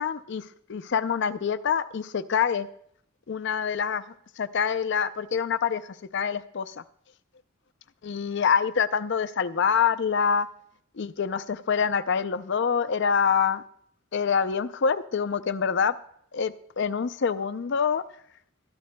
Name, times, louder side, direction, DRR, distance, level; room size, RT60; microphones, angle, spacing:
voice 1, 0.0-2.7 3.3-6.8 8.0-10.5 10.9-13.6 14.1-16.0 16.3-18.0, left 6 dB, 60° left, 14 dB, 0.5 m, -26 dB
21.5 x 13.0 x 2.2 m, 0.68 s
head